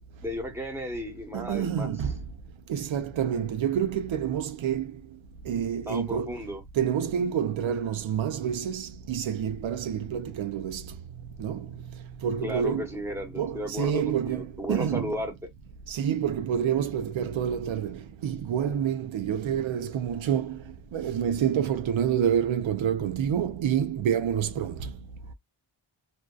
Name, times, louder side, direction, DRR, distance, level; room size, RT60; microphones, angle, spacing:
voice 1, 0.2-1.9 5.9-6.6 12.4-15.3, equal, 5° right, 0.9 m, -34 dB
voice 2, 1.3-2.2 2.7-5.0 5.5-6.4 6.7-10.9 11.4-11.7 12.2-12.9 13.4-15.2 15.9-20.6 20.9-25.0, right 9 dB, 75° right, 0.5 m, -28 dB
2.6 x 2.2 x 2.3 m
wide cardioid pair, 75°, 47 cm